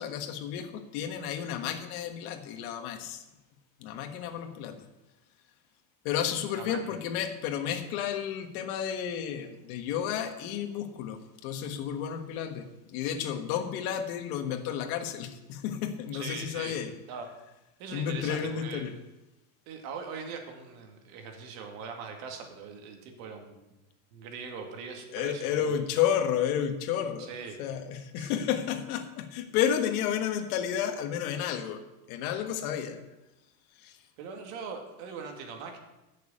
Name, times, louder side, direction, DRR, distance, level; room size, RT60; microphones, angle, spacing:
voice 1, 0.0-3.2 3.8-4.8 6.0-16.9 17.9-18.9 25.1-27.3 27.6-31.8 32.1-33.0 33.8-34.0, left 9 dB, 85° left, 7 dB, 1.6 m, -31 dB
voice 2, 6.5-7.0 16.1-16.8 17.1-17.3 17.8-18.9 19.7-23.7 24.1-25.7 27.2-27.6 28.2-28.3 34.2-35.8, right 5 dB, 75° right, 4 dB, 2.5 m, -41 dB
9.7 x 6.6 x 8.6 m, 0.98 s
cardioid pair, 145°, 42 cm